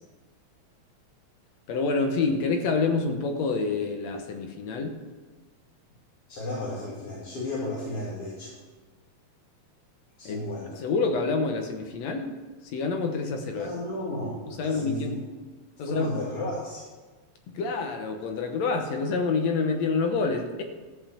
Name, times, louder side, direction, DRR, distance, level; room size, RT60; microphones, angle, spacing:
voice 1, 1.7-5.0 10.3-10.4 10.7-12.3 12.6-13.7 14.5-15.1 15.8-16.1 17.5-20.6, left 4 dB, 70° left, 5 dB, 2.2 m, -27 dB
voice 2, 6.3-8.5 10.2-10.8 13.5-15.1 15.8-16.9, left 1 dB, 55° left, -6 dB, 3.2 m, -33 dB
14.0 x 5.6 x 7.2 m, 1.3 s
omnidirectional pair, 3.3 m